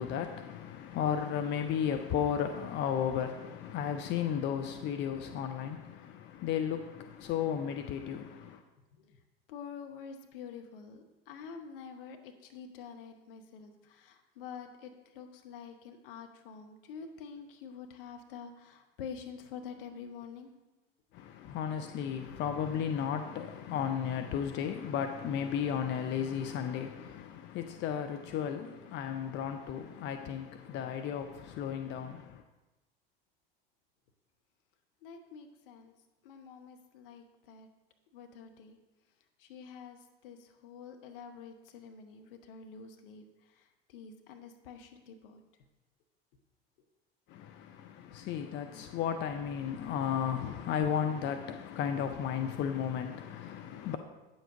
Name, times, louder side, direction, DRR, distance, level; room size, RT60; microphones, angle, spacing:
voice 1, 0.0-8.6 21.1-32.4 47.3-54.0, left 8 dB, 35° left, 0.6 m, -34 dB
voice 2, 9.5-20.5 35.0-35.9 36.2-37.7 38.1-38.8 39.4-45.4, left 6 dB, 65° left, 1.0 m, -47 dB
8.9 x 7.2 x 3.8 m
figure-of-eight pair, 75°, 30 cm